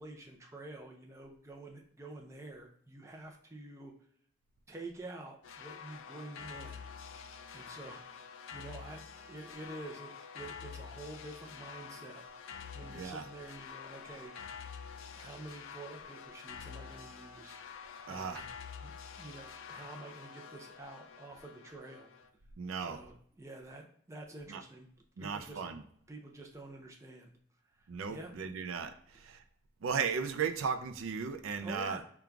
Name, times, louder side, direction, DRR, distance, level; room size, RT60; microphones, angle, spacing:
voice 1, 0.0-3.9 4.7-6.9 7.5-14.3 15.1-17.5 18.1-18.5 18.8-22.1 22.8-24.9 25.2-25.6 26.1-27.3 27.8-28.3 31.6-32.0, right 2 dB, 15° right, 1 dB, 0.4 m, -48 dB
sound 1, 5.4-22.3, left 6 dB, 75° left, 0.4 m, -48 dB
voice 2, 12.9-13.2 18.1-18.4 22.6-23.0 24.5-24.6 25.2-25.8 27.9-29.4 29.8-32.0, right 6 dB, 85° right, 8 dB, 0.4 m, -36 dB
3.8 x 2.3 x 4.4 m, 0.63 s
head